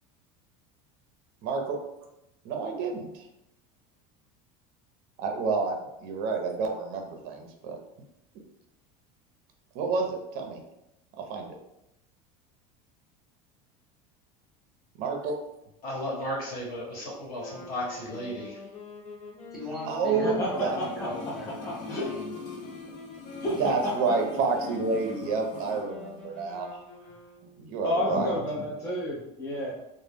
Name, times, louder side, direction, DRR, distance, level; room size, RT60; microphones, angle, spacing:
voice 1, 1.4-1.8 2.4-3.3 5.2-7.8 9.7-10.6 11.3-11.6 14.9-15.4 19.8-20.8 23.4-26.7 27.6-28.4, right 4 dB, 60° right, 3 dB, 0.6 m, -29 dB
voice 2, 15.8-18.7, equal, 60° left, -4 dB, 1.1 m, -34 dB
sound 1, 17.4-27.8, left 3 dB, 45° left, 1.2 m, -45 dB
voice 3, 19.5-22.3, left 1 dB, 5° right, -6 dB, 0.9 m, -38 dB
voice 4, 20.1-21.1 21.9-22.1 23.4-23.6 23.8-23.9 27.8-29.7, left 1 dB, 15° left, -5 dB, 0.5 m, -30 dB
sound 2, 20.4-25.9 26.1-26.2, left 3 dB, 75° left, 0.6 m, -43 dB
2.1 x 2.0 x 3.3 m, 0.86 s
supercardioid pair, 120°, 17 cm